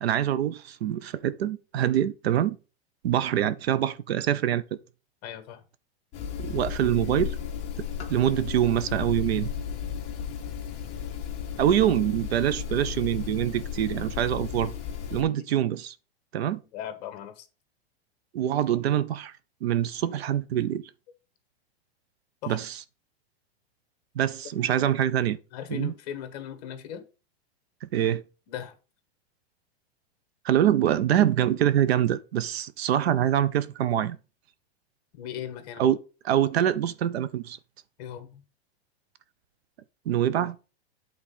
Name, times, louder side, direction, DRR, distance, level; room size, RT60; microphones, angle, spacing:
voice 1, 0.0-2.6 3.0-4.8 6.4-7.4 8.1-9.5 11.6-14.7 15.1-15.9 16.3-16.6 18.3-19.3 19.6-20.8 22.5-22.8 24.1-25.4 25.7-25.9 27.8-28.2 30.4-34.2 35.8-36.0 36.2-37.6 40.1-40.6, right 11 dB, 75° right, 0.7 m, -25 dB
voice 2, 5.2-5.6 15.1-15.3 16.7-17.5 22.4-22.6 25.5-27.0 28.5-28.7 35.1-35.9 38.0-38.4, left 10 dB, 40° left, 1.4 m, -38 dB
sound 1, 6.1-15.2, left 8 dB, 20° left, 1.3 m, -34 dB
8.6 x 3.9 x 5.4 m
supercardioid pair, 170°, 32 cm